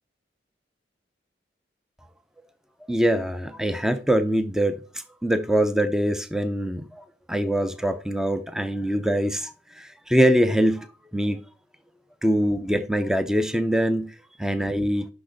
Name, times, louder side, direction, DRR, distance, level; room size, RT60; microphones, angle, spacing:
voice 1, 2.9-4.8 5.2-10.9 11.1-11.4 12.2-15.1, equal, 5° right, 0.5 m, -23 dB
6.2 x 5.8 x 5.0 m
head